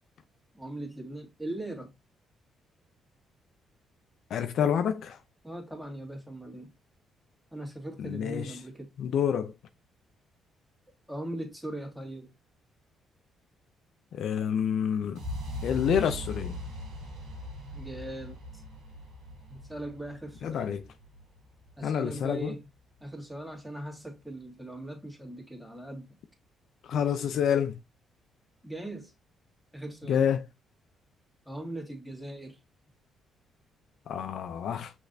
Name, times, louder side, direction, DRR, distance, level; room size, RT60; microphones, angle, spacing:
voice 1, 0.5-1.9 5.4-6.7 7.5-8.9 11.1-12.3 17.7-18.6 19.5-20.8 21.8-22.7 23.0-26.2 28.6-29.1 29.7-30.2 31.5-32.6, right 1 dB, 5° right, 2.1 m, -40 dB
voice 2, 4.3-5.2 8.0-8.5 9.0-9.5 14.1-15.2 15.6-16.6 20.4-20.8 21.8-22.5 26.9-27.8 30.1-30.4 34.1-34.9, left 8 dB, 70° left, 0.5 m, -28 dB
sound 1, 15.2-23.1, left 1 dB, 85° right, 1.5 m, -40 dB
6.1 x 3.3 x 2.6 m
cardioid pair, 90°, 0 cm